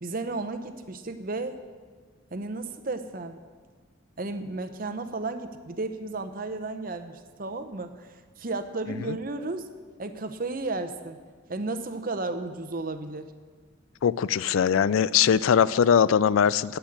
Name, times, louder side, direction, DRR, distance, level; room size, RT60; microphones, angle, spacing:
voice 1, 0.0-1.6 2.3-3.4 4.2-9.7 10.0-11.2 11.5-13.3, right 3 dB, 45° right, 9 dB, 0.8 m, -33 dB
voice 2, 14.0-16.8, left 8 dB, 90° left, 18 dB, 0.4 m, -21 dB
10.0 x 8.1 x 8.6 m, 1.5 s
head